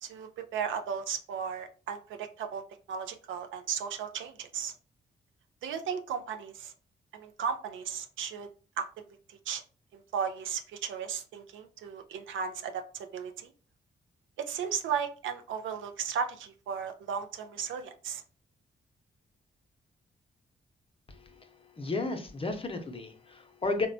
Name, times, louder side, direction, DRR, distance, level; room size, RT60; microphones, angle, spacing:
voice 1, 0.0-2.6 2.9-4.7 5.6-6.7 7.1-8.5 8.8-9.6 9.9-13.5 14.4-18.2, right 7 dB, 75° right, 7 dB, 0.4 m, -35 dB
voice 2, 21.1-21.5 21.8-23.9, left 3 dB, 30° left, 6 dB, 0.7 m, -33 dB
3.0 x 2.1 x 2.6 m, 0.36 s
supercardioid pair, 45°, 20 cm